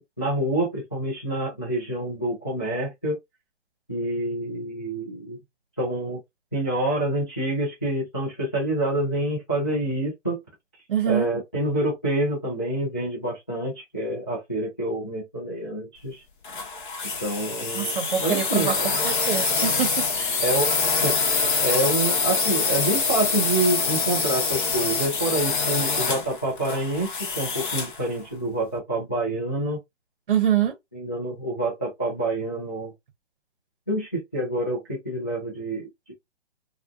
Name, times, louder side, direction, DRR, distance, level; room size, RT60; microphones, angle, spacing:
voice 1, 0.0-3.2 3.9-5.4 5.8-6.2 6.5-10.4 11.1-16.2 17.2-18.9 20.4-21.2 21.6-29.8 30.9-32.9 33.9-36.1, right 1 dB, 15° left, 0.3 m, -27 dB
voice 2, 10.9-11.3 17.7-18.7 19.0-20.4 30.3-30.7, right 9 dB, 50° right, 0.7 m, -25 dB
sound 1, 16.4-28.0, left 4 dB, 45° left, 0.8 m, -25 dB
2.4 x 2.3 x 2.3 m
hypercardioid pair, 150°, 34 cm